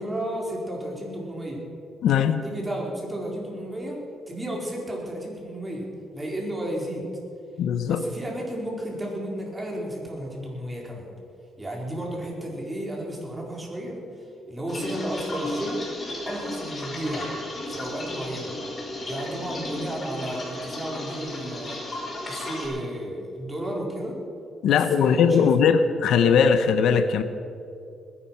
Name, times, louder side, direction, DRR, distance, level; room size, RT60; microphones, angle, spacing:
voice 1, 0.0-1.6 2.4-4.0 4.3-5.9 6.1-7.0 7.8-11.1 11.6-15.8 16.2-17.3 17.7-18.6 19.0-21.8 22.3-24.1 24.6-25.5, right 1 dB, 15° right, -2 dB, 4.5 m, -33 dB
voice 2, 2.0-2.4 7.6-8.0 24.6-27.2, left 7 dB, 75° left, 10 dB, 0.9 m, -20 dB
sound 1, 14.7-22.7, left 1 dB, 35° left, 4.9 m, -34 dB
21.0 x 10.0 x 5.9 m, 2.4 s
cardioid pair, 90°, 0 cm